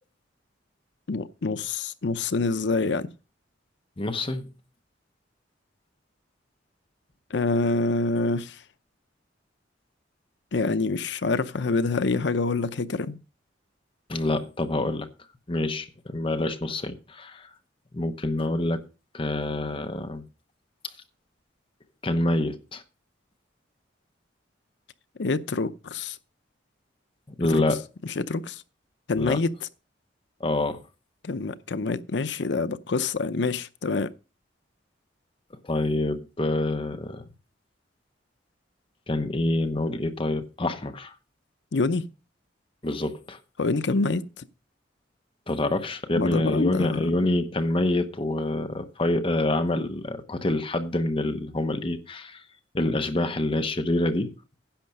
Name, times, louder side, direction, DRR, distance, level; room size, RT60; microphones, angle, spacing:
voice 1, 1.1-3.1 7.3-8.6 10.5-13.2 25.2-26.2 27.5-27.6 28.2-28.6 29.1-29.5 31.2-34.1 41.7-42.0 43.6-44.4 46.1-47.1, left 3 dB, 70° left, 0.7 m, -26 dB
voice 2, 4.0-4.5 14.1-15.1 15.5-17.5 17.9-18.8 19.1-20.2 22.0-22.8 27.4-27.8 29.2-29.4 30.4-30.8 35.6-37.2 39.1-41.1 42.8-43.4 45.5-52.4 52.7-54.3, left 1 dB, 30° left, 0.9 m, -26 dB
10.5 x 7.4 x 5.3 m
head